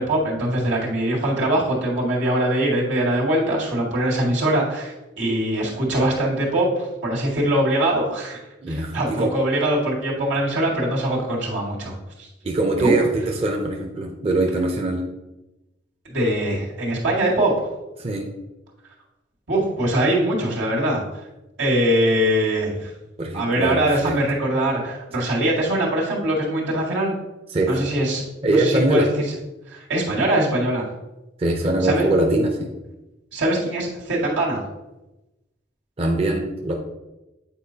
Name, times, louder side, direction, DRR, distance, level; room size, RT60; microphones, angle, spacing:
voice 1, 0.0-8.4 8.7-11.9 12.2-12.3 12.8-12.9 16.1-17.7 19.5-21.0 21.6-22.9 23.3-27.1 27.7-29.1 29.7-30.9 31.8-32.1 33.3-34.6, right 1 dB, 90° right, -4 dB, 1.9 m, -22 dB
voice 2, 8.6-9.3 12.4-15.1 18.0-18.3 23.2-24.2 27.5-27.9 28.4-29.1 31.4-32.7 36.0-36.7, right 2 dB, 35° right, 1 dB, 0.6 m, -22 dB
8.5 x 4.6 x 2.8 m, 1.0 s
head